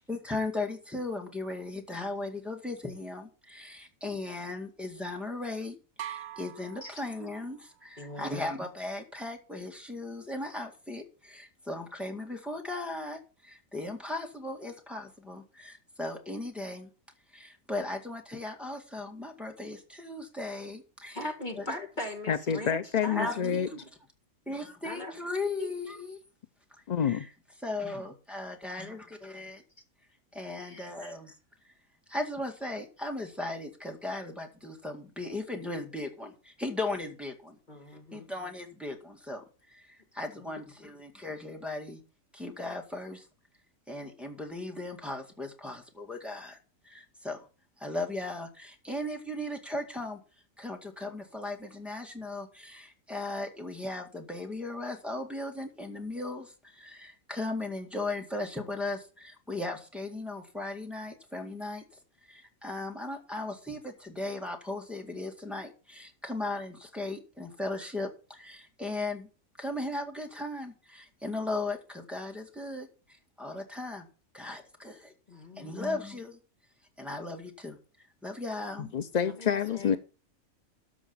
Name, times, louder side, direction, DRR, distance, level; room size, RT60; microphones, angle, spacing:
voice 1, 0.1-16.9 17.3-21.3 21.6-21.7 23.1-23.7 24.5-26.2 27.0-27.3 27.6-29.6 30.3-31.3 32.1-37.6 38.1-42.0 42.3-43.3 43.9-46.6 46.8-47.5 47.8-50.2 50.6-61.8 62.3-69.3 69.6-72.9 73.4-74.1 74.3-75.1 75.5-76.4 77.0-77.8 78.2-78.9, left 2 dB, ahead, 2.0 m, -37 dB
sound 1, 6.0-7.8, right 11 dB, 60° right, 0.8 m, -43 dB
voice 2, 8.0-8.4 21.1-23.3 24.8-25.1 25.6-25.8 30.6-31.1 37.7-38.3 75.3-75.9 79.2-80.0, left 1 dB, 35° left, 2.1 m, -40 dB
voice 3, 22.3-23.7 26.9-27.3 78.8-80.0, left 8 dB, 55° left, 0.4 m, -28 dB
13.5 x 5.0 x 7.0 m
omnidirectional pair, 1.4 m